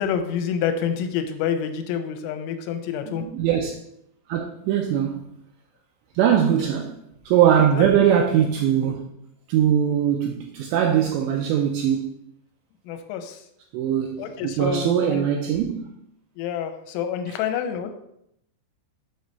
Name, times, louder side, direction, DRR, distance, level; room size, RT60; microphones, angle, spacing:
voice 1, 0.0-3.3 6.6-6.7 7.6-7.9 12.9-13.4 14.2-15.2 16.4-17.9, left 8 dB, 80° left, 3.1 m, -28 dB
voice 2, 3.1-3.8 4.3-5.3 6.2-9.1 9.5-12.1 13.7-15.9, right 9 dB, 90° right, 2.5 m, -21 dB
7.9 x 6.5 x 4.2 m
omnidirectional pair, 5.7 m